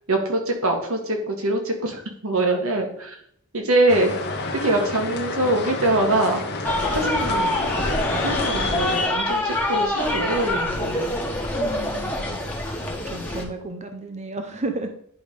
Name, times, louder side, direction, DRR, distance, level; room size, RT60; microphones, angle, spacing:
voice 1, 0.1-3.1 3.5-4.1 4.6-6.4 6.9-7.5 8.2-11.1, right 2 dB, 65° right, 2 dB, 1.7 m, -23 dB
sound 1, 3.9-9.1, left 3 dB, 50° left, 1.0 m, -29 dB
sound 2, 6.6-13.4, left 1 dB, 5° left, 1.4 m, -25 dB
voice 2, 11.5-12.4 12.9-14.9, right 2 dB, 30° right, 6 dB, 0.7 m, -33 dB
10.5 x 3.5 x 5.1 m, 0.66 s
head